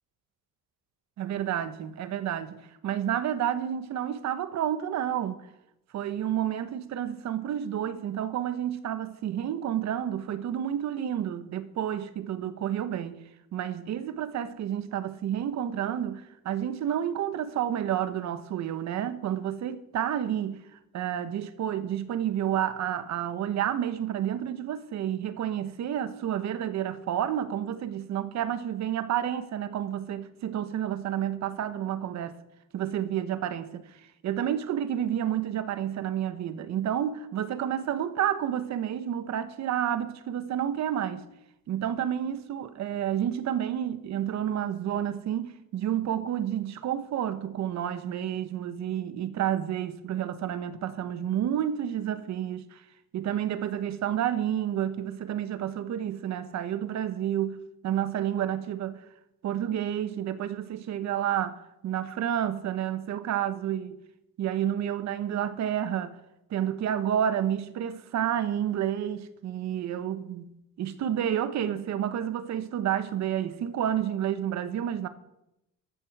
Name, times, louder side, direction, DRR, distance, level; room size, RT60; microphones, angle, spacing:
voice 1, 1.2-2.6 2.8-5.4 5.9-13.2 13.5-20.6 20.9-32.4 32.7-33.8 34.2-41.2 41.7-52.8 53.1-59.0 59.4-64.0 64.4-66.2 66.5-70.5 70.8-75.1, right 10 dB, 50° right, 1.2 m, -30 dB
14.0 x 12.5 x 4.8 m
cardioid pair, 165°, 35 cm